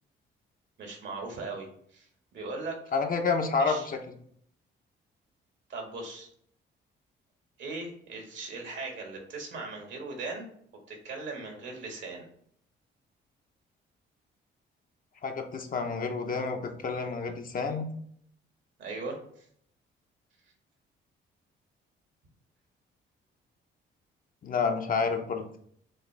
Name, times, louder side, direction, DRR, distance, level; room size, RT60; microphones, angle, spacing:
voice 1, 0.8-2.8 3.6-3.9 5.7-6.3 7.6-10.5 10.9-12.3 18.8-19.4, right 3 dB, 70° right, 1 dB, 1.6 m, -39 dB
voice 2, 2.9-4.0 15.2-17.9 24.4-25.4, left 4 dB, 45° left, 4 dB, 0.8 m, -29 dB
6.4 x 2.3 x 3.3 m, 0.65 s
cardioid pair, 90°, 20 cm